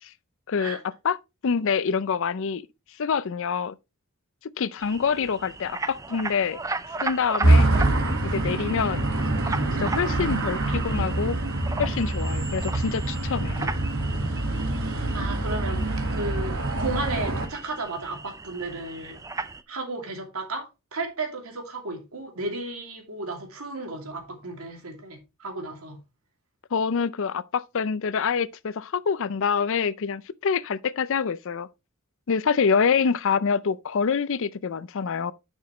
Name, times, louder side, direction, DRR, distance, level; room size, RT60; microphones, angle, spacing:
voice 1, 0.5-0.8 1.0-1.2 1.4-2.6 3.0-3.7 4.6-6.6 7.0-7.7 8.3-9.0 9.8-11.4 11.8-13.7 26.7-31.7 32.3-35.3, left 6 dB, 65° left, 0.5 m, -26 dB
sound 1, 4.8-19.6, right 3 dB, 15° right, 0.5 m, -37 dB
sound 2, 7.4-17.5, right 2 dB, 70° right, 1.7 m, -25 dB
voice 2, 15.1-19.2 19.7-26.0, right 2 dB, 90° right, 2.7 m, -34 dB
10.5 x 6.3 x 3.1 m
head